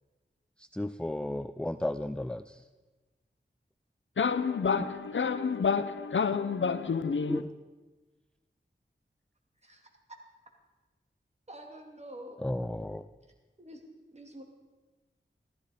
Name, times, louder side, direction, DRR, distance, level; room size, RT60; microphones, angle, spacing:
voice 1, 0.7-2.6 7.3-7.4 12.4-13.0, left 1 dB, 5° left, 0.5 m, -33 dB
voice 2, 4.2-7.4, left 5 dB, 80° left, 0.7 m, -29 dB
voice 3, 11.5-12.4 13.6-13.8 14.1-14.4, right 1 dB, 35° right, 2.7 m, -47 dB
14.5 x 14.0 x 5.1 m
cardioid pair, 45°, 19 cm